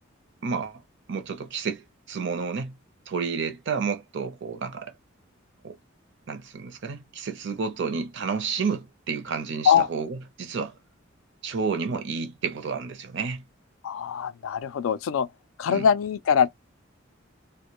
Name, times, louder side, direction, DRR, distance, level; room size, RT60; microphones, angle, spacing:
voice 1, 0.4-0.8 1.1-2.7 3.1-4.9 5.6-5.8 6.3-10.8 11.4-13.4 15.7-15.9, right 5 dB, 60° right, 0.5 m, -30 dB
voice 2, 13.8-15.3 15.6-16.5, left 7 dB, 85° left, 0.3 m, -22 dB
2.1 x 2.1 x 2.9 m
head